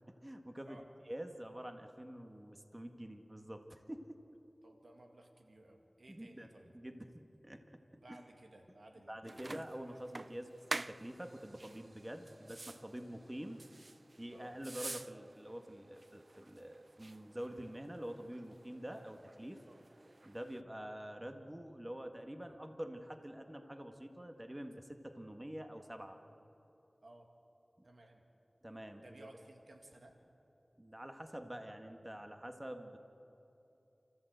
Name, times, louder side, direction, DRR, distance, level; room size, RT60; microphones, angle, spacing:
voice 1, 0.1-0.8 1.1-4.2 6.1-7.1 7.4-7.6 8.1-8.2 9.1-13.6 14.2-19.6 20.2-26.2 27.8-27.9 28.6-29.3 30.8-33.0, equal, 25° right, 5 dB, 1.7 m, -47 dB
voice 2, 4.6-6.8 7.9-9.5 14.3-14.6 19.7-19.8 27.0-27.3 27.8-28.2 29.0-30.2, right 1 dB, 85° right, 3 dB, 2.0 m, -58 dB
sound 1, 9.2-20.6, right 2 dB, 60° right, 0.4 m, -49 dB
29.0 x 14.5 x 8.0 m, 3.0 s
wide cardioid pair, 40°, 0 cm